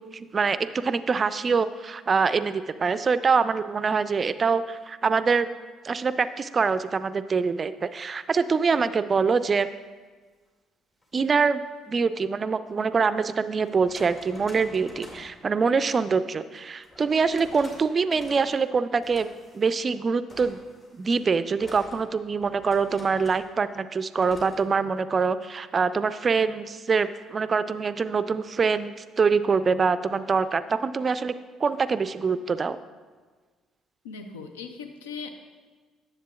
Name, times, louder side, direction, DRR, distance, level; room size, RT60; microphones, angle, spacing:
voice 1, 0.1-5.5 5.8-9.7 11.1-11.6 11.9-19.3 19.5-20.6 20.9-31.3 31.6-32.8, right 5 dB, 40° right, 13 dB, 0.3 m, -24 dB
sound 1, 11.0-11.2 12.8-12.9 13.6-15.4 16.8-17.8 18.1-18.7 19.0-19.9 20.3-23.5 24.2-24.6, left 1 dB, 40° left, 2.2 m, -48 dB
voice 2, 34.0-35.3, left 5 dB, 85° left, 7 dB, 0.4 m, -38 dB
10.0 x 7.5 x 2.4 m, 1.4 s
hypercardioid pair, 50°, 0 cm